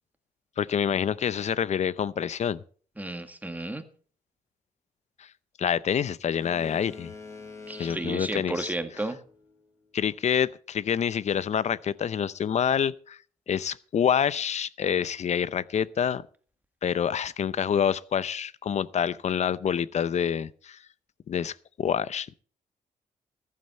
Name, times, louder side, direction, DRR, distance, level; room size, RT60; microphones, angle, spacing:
voice 1, 0.6-2.6 5.6-7.1 7.8-8.7 9.9-13.2 13.5-16.2 16.8-20.8 21.3-22.3, left 8 dB, 50° left, 0.6 m, -27 dB
voice 2, 3.0-3.8 7.7-9.2, right 2 dB, 10° right, 1.8 m, -33 dB
Boat Water vehicle, 6.4-9.5, left 4 dB, 20° left, 3.7 m, -45 dB
14.5 x 11.0 x 4.3 m
cardioid pair, 75°, 14 cm